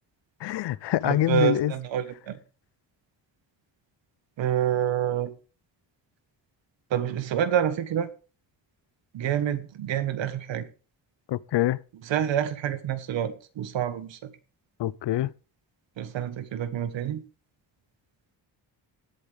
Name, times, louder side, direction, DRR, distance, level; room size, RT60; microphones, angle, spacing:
voice 1, 0.4-1.7 11.3-11.8 14.8-15.3, left 13 dB, 70° left, 0.6 m, -25 dB
voice 2, 1.0-2.4 4.4-5.3 6.9-8.1 9.1-10.7 12.0-14.3 16.0-17.2, right 10 dB, 85° right, 1.4 m, -27 dB
18.5 x 8.3 x 3.4 m
cardioid pair, 85°, 44 cm